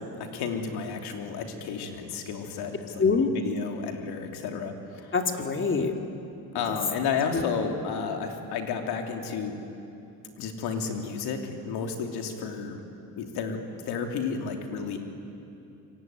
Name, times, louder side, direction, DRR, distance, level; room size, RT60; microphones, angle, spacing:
voice 1, 0.2-5.1 6.5-9.6 10.4-12.8 13.2-13.6 13.9-15.0, left 6 dB, 90° left, 4 dB, 3.1 m, -32 dB
voice 2, 3.0-3.3 5.1-5.9 7.3-7.4, left 4 dB, 30° left, 5 dB, 2.4 m, -24 dB
26.0 x 23.5 x 9.4 m, 2.8 s
cardioid pair, 115°, 38 cm